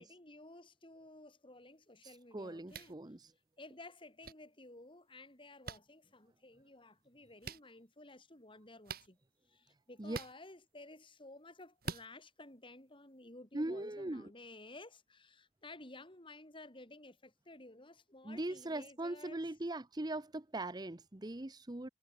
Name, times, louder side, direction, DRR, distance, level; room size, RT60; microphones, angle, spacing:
voice 1, 0.0-3.0 3.6-9.2 9.5-19.4, left 2 dB, 30° left, 4.8 m, -54 dB
voice 2, 2.0-3.3 10.0-10.2 13.5-14.3 18.2-21.9, right 1 dB, 25° right, 0.9 m, -40 dB
sound 1, 2.7-2.9 4.2-4.3 5.6-5.8 7.4-7.6 8.8-9.1 10.1-10.3 11.8-12.1, right 4 dB, 55° right, 2.3 m, -43 dB
head